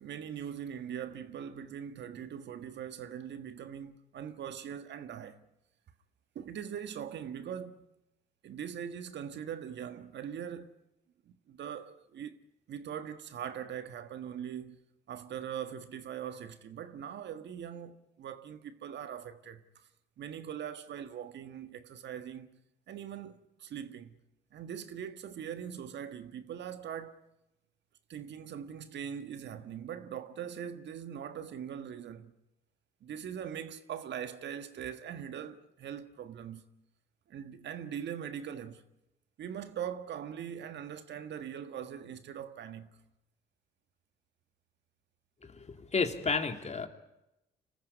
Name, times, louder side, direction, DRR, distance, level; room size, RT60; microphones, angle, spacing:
voice 1, 0.0-5.4 6.3-7.8 8.4-10.7 11.2-12.4 12.7-14.8 15.1-19.9 20.2-22.6 22.9-24.2 24.5-27.2 28.1-32.3 33.0-36.6 37.3-38.8 39.4-43.0, right 8 dB, 65° right, 1.6 m, -41 dB
voice 2, 45.4-46.9, left 4 dB, 35° left, 2.8 m, -32 dB
25.0 x 14.5 x 9.9 m
supercardioid pair, 60°, 20 cm